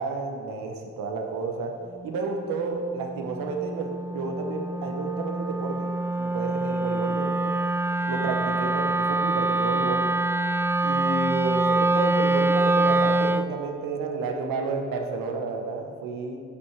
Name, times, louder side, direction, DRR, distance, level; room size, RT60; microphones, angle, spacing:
voice 1, 0.0-1.7 2.0-7.5 8.1-10.1 10.8-16.4, right 4 dB, 85° right, 3 dB, 0.9 m, -31 dB
Wind instrument woodwind instrument, 2.0-13.6, right 2 dB, 10° right, 0.3 m, -25 dB
6.5 x 5.5 x 5.7 m, 2.2 s
supercardioid pair, 40°, 33 cm